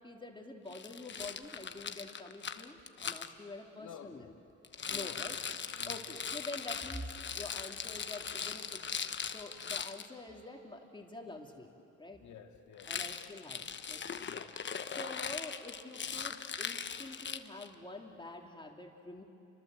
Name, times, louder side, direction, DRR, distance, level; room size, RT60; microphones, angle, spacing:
voice 1, 0.0-4.3 4.9-5.4 5.8-8.9 9.2-11.7 12.0-12.2 12.9-14.2 14.9-19.2, left 2 dB, 15° left, 3.1 m, -47 dB
Rattle, 0.7-3.3 4.6-10.1 12.8-17.7, left 6 dB, 40° left, 1.1 m, -40 dB
voice 2, 3.8-4.4 4.9-5.5 5.8-6.1 6.4-6.5 12.2-13.3 14.2-14.7, left 8 dB, 70° left, 2.1 m, -52 dB
30.0 x 24.5 x 7.9 m
cardioid pair, 90°, 30 cm